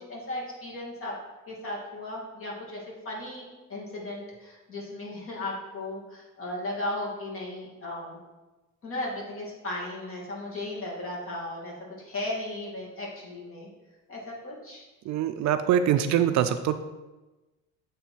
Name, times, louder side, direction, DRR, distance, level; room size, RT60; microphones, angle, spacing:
voice 1, 0.1-1.1 1.5-8.2 8.8-13.7 14.1-14.8, left 1 dB, 40° left, -4 dB, 2.2 m, -36 dB
voice 2, 15.1-16.7, right 10 dB, 55° right, 10 dB, 0.5 m, -23 dB
8.3 x 3.4 x 4.5 m, 1.1 s
cardioid pair, 125°, 33 cm